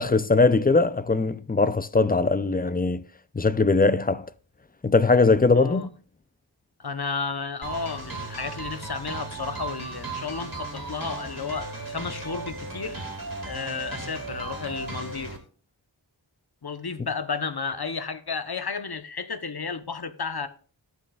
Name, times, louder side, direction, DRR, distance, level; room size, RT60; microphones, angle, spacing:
voice 1, 0.0-3.0 3.3-4.3 4.8-5.9, left 3 dB, 20° left, 0.4 m, -21 dB
voice 2, 5.5-5.9 6.8-13.0 13.4-15.4 16.6-20.5, left 5 dB, 55° left, 0.9 m, -32 dB
sound 1, 7.6-15.4, right 3 dB, 45° right, 2.3 m, -36 dB
14.5 x 6.3 x 2.3 m
wide cardioid pair, 40°, 45 cm